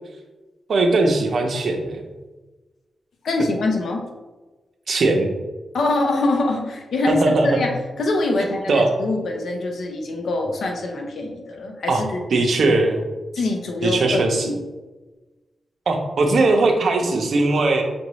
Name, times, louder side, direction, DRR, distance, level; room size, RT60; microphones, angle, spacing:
voice 1, 0.7-2.0 4.9-5.3 7.1-7.6 8.7-9.0 11.9-12.0 12.3-13.0 13.8-14.5 15.9-17.8, right 2 dB, 65° right, 3 dB, 0.7 m, -19 dB
voice 2, 3.2-4.0 5.7-12.2 12.6-12.7 13.3-14.6, left 2 dB, 70° left, 2 dB, 0.7 m, -24 dB
6.1 x 2.6 x 3.1 m, 1.2 s
wide cardioid pair, 120°, 0 cm